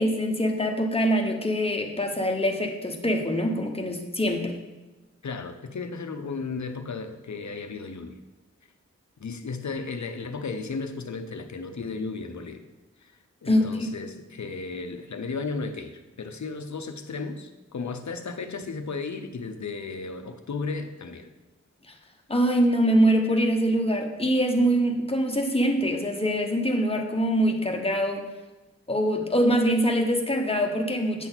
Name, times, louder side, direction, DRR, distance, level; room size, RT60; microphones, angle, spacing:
voice 1, 0.0-4.6 13.5-13.9 22.3-28.2 28.9-31.3, equal, 20° left, 2 dB, 1.1 m, -24 dB
voice 2, 5.2-8.2 9.2-12.6 13.0-21.3, left 4 dB, 75° left, 7 dB, 0.8 m, -34 dB
9.1 x 6.0 x 4.1 m, 1.1 s
wide cardioid pair, 70°, 29 cm